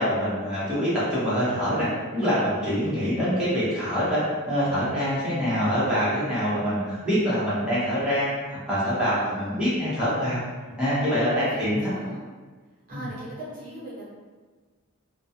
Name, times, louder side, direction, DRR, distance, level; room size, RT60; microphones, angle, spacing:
voice 1, 0.0-10.4 10.8-11.9 12.9-13.1, equal, 5° right, -11 dB, 0.8 m, -25 dB
voice 2, 2.8-3.2 9.1-9.9 11.0-12.2 12.9-14.0, right 1 dB, 40° right, -8 dB, 0.7 m, -41 dB
2.2 x 2.2 x 2.7 m, 1.4 s
head